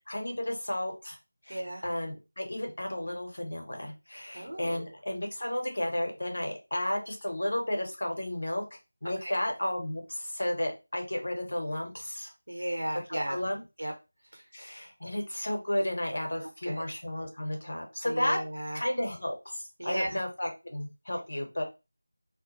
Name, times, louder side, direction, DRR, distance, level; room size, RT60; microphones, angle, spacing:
voice 1, 0.1-1.2 1.4-8.6 9.0-12.3 13.1-13.6 14.5-18.4 18.7-21.6, left 1 dB, 60° left, 3 dB, 0.8 m, -33 dB
voice 2, 1.5-1.9 4.3-4.9 9.2-9.4 12.5-13.4 13.8-13.9 14.3-14.4 16.4-16.8 18.0-18.8 19.8-20.2, right 1 dB, 85° right, 2 dB, 1.0 m, -35 dB
2.2 x 2.1 x 2.9 m, 0.27 s
figure-of-eight pair, 180°, 0 cm